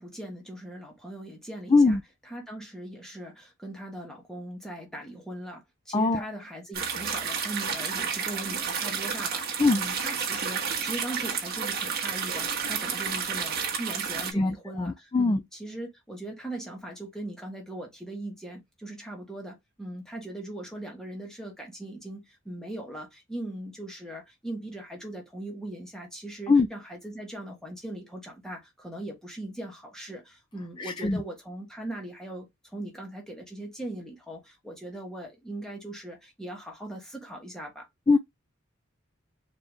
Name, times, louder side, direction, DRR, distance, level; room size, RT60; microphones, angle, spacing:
voice 1, 0.0-2.0 2.3-9.5 9.7-37.9, right 1 dB, 5° left, 1.5 m, -40 dB
voice 2, 1.7-2.0 5.9-6.2 9.6-9.8 14.3-15.4 26.5-26.7 30.8-31.2 38.1-38.2, left 3 dB, 25° left, 0.4 m, -22 dB
sound 1, 6.7-14.3, right 6 dB, 50° right, 1.3 m, -31 dB
4.4 x 3.0 x 3.3 m
head